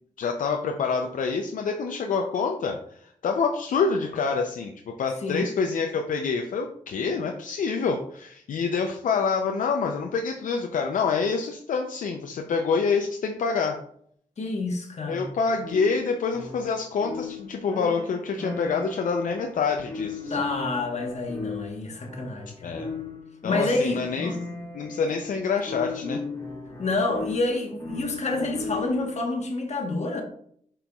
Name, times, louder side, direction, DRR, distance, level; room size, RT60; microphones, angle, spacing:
voice 1, 0.2-13.8 15.1-20.3 22.6-22.9 23.4-24.4 24.7-26.2, left 5 dB, 75° left, 3 dB, 0.5 m, -27 dB
voice 2, 5.2-5.5 14.4-15.3 20.3-22.9 23.4-24.4 26.8-30.2, left 2 dB, 55° left, 3 dB, 1.1 m, -28 dB
sound 1, 15.6-29.2, left 4 dB, 20° left, 1.3 m, -37 dB
5.1 x 4.4 x 2.3 m, 0.65 s
cardioid pair, 65°, 14 cm